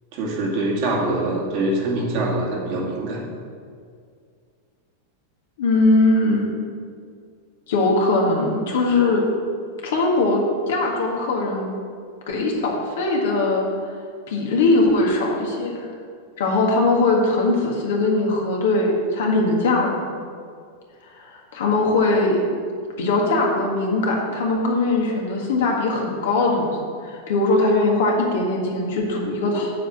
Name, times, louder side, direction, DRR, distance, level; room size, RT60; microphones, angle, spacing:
voice 1, 0.1-3.2, right 2 dB, 45° right, -3 dB, 2.1 m, -24 dB
voice 2, 5.6-6.5 7.7-9.2 9.8-11.7 12.3-13.9 14.3-15.9 16.4-20.0 21.1-22.4 23.0-26.8 27.0-29.7, left 2 dB, 55° left, -1 dB, 1.7 m, -20 dB
7.5 x 5.6 x 7.3 m, 2.2 s
figure-of-eight pair, 90°, 0 cm